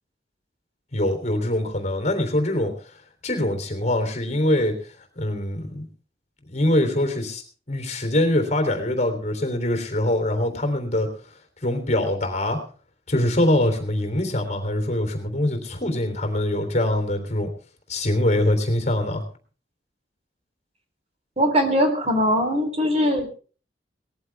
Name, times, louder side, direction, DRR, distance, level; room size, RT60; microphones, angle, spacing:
voice 1, 0.9-2.7 3.2-5.9 6.5-7.4 7.7-11.1 11.6-12.6 13.1-17.5 17.9-19.2, left 1 dB, 40° left, 6 dB, 3.4 m, -23 dB
voice 2, 21.4-23.3, equal, 35° right, 4 dB, 3.6 m, -21 dB
19.5 x 14.5 x 3.5 m, 0.39 s
head